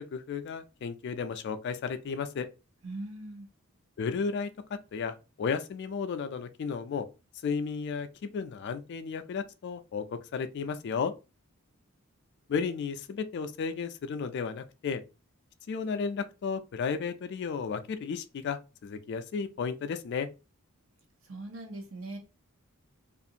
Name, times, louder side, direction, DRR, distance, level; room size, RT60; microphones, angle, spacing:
voice 1, 0.0-2.5 4.0-7.1 7.4-11.1 12.5-15.0 15.7-20.3, left 5 dB, 55° left, 0.3 m, -33 dB
voice 2, 2.8-3.5 21.2-22.2, right 2 dB, 70° right, 0.8 m, -40 dB
2.5 x 2.4 x 2.7 m
head